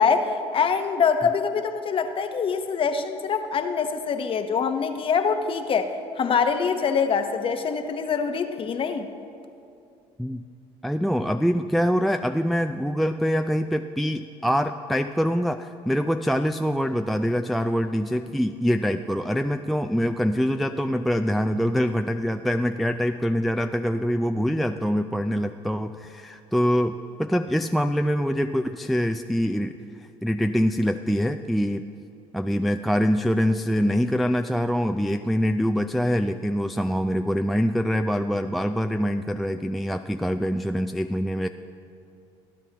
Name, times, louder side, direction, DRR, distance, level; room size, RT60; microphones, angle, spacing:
voice 1, 0.0-9.1, left 6 dB, 45° left, 7 dB, 0.8 m, -24 dB
voice 2, 10.8-31.8 32.3-41.5, equal, ahead, 6 dB, 0.3 m, -24 dB
18.5 x 10.5 x 2.9 m, 2.5 s
supercardioid pair, 75°, 13 cm